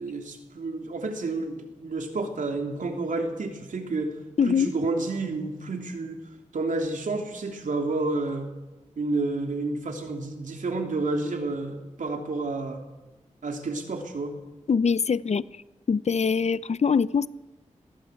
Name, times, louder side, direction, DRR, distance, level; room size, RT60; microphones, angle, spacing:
voice 1, 0.0-4.1 4.5-6.2 6.5-8.5 9.0-12.8 13.4-14.4, right 3 dB, 80° right, 3 dB, 3.1 m, -30 dB
voice 2, 4.4-4.7 14.7-15.6 15.9-17.3, left 6 dB, 60° left, 18 dB, 0.6 m, -23 dB
21.0 x 15.5 x 8.3 m, 1.1 s
wide cardioid pair, 70°, 13 cm